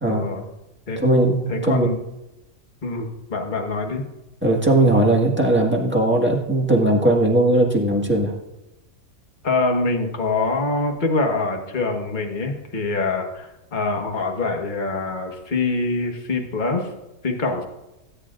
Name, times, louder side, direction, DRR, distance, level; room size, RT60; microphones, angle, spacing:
voice 1, 0.1-0.4 0.9-1.0 1.5-2.0 2.8-4.1 9.4-16.9 17.2-17.7, left 3 dB, 35° left, 3 dB, 1.5 m, -24 dB
voice 2, 1.0-1.9 4.4-8.3, right 1 dB, 10° right, -1 dB, 1.6 m, -18 dB
18.0 x 9.7 x 2.5 m, 0.97 s
omnidirectional pair, 1.5 m